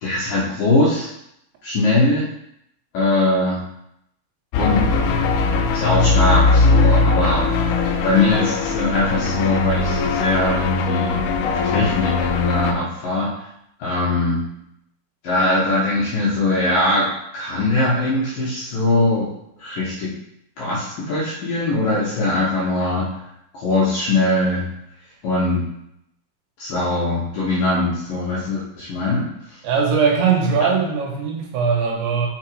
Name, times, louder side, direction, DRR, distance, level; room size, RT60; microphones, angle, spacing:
voice 1, 0.0-1.1 1.6-2.3 2.9-3.6 4.6-4.8 5.7-7.5 8.0-13.3 13.8-14.4 15.2-17.1 17.3-19.3 19.6-20.1 20.6-23.1 23.5-24.7 25.2-25.6 26.6-29.3 30.6-30.7, left 2 dB, 70° left, -7 dB, 2.2 m, -21 dB
sound 1, 4.5-12.7, left 3 dB, 85° left, 3.1 m, -19 dB
voice 2, 29.6-32.3, right 6 dB, 75° right, 0 dB, 3.2 m, -20 dB
6.4 x 5.0 x 4.7 m, 0.78 s
omnidirectional pair, 5.5 m